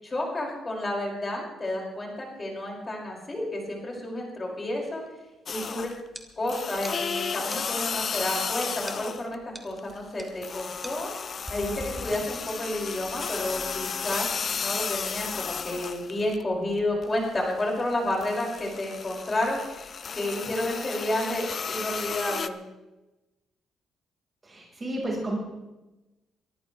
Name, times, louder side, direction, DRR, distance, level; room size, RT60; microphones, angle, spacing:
voice 1, 0.0-5.0 5.5-5.9 6.4-11.1 11.5-19.8 20.1-22.6, left 1 dB, 30° left, -1 dB, 6.0 m, -31 dB
sound 1, 3.8-4.2 4.7-5.4 6.1-6.2 6.6-6.9 7.5-7.6 8.1-8.4 8.9-9.0 9.5-9.7 10.0-10.3 10.8-12.7, equal, 5° right, 2.0 m, -42 dB
sound 2, 5.5-6.1 6.4-9.3 9.7-16.4 16.8-22.5, left 6 dB, 45° left, 0.8 m, -33 dB
voice 2, 24.4-25.4, right 1 dB, 25° right, -2 dB, 5.1 m, -31 dB
23.5 x 14.0 x 3.4 m, 1.0 s
cardioid pair, 90°, 0 cm